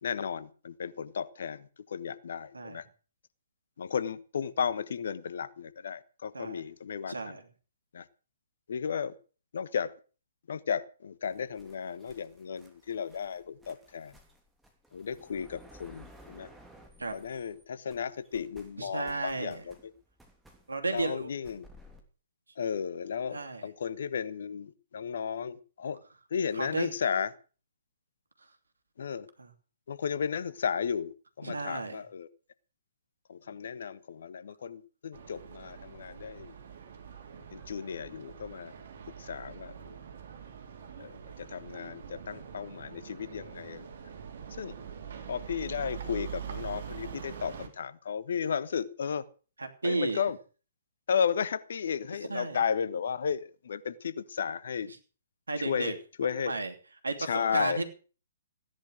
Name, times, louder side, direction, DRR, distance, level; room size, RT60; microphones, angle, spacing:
voice 1, 0.0-2.8 3.8-7.3 7.9-8.0 8.7-9.1 9.5-9.9 10.5-14.1 14.9-16.5 17.1-19.7 20.9-21.7 22.6-26.0 26.3-27.3 29.0-29.3 29.9-31.1 31.4-32.3 33.3-36.5 37.5-38.7 39.2-40.0 41.0-41.1 41.4-43.9 44.6-44.7 45.3-49.3 49.8-50.4 51.1-54.9 55.6-56.5 57.2-57.8, left 7 dB, 60° left, 15 dB, 1.2 m, -34 dB
voice 2, 7.1-7.4 17.0-17.1 18.8-19.6 20.7-21.3 23.3-23.7 26.5-26.9 29.4-29.5 31.4-32.0 49.6-50.2 52.3-52.6 54.9-55.0 55.5-55.9 56.2-56.7 57.0-57.8, right 3 dB, 80° right, 6 dB, 2.9 m, -33 dB
sound 1, 11.2-17.6 17.9-22.0, equal, 5° right, 3.1 m, -57 dB
sound 2, 35.1-47.7, right 8 dB, 55° right, 3.6 m, -44 dB
16.0 x 10.5 x 6.4 m, 0.38 s
figure-of-eight pair, 125°, 0 cm